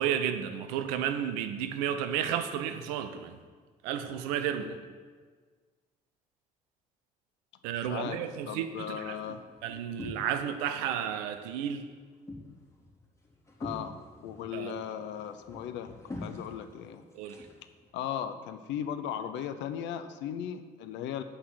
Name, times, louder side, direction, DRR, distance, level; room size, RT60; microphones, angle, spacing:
voice 1, 0.0-3.4 3.8-4.8 7.6-9.2 9.6-11.8 14.5-14.7 17.1-17.4, right 9 dB, 75° right, 8 dB, 0.7 m, -32 dB
voice 2, 7.9-9.4 13.6-14.0 14.2-17.0 17.9-21.2, left 9 dB, 65° left, 10 dB, 0.8 m, -37 dB
sound 1, 8.9-10.6 10.9-11.6 11.9-17.9, left 2 dB, 15° left, 3.4 m, -45 dB
8.1 x 5.7 x 7.9 m, 1.5 s
hypercardioid pair, 50°, 20 cm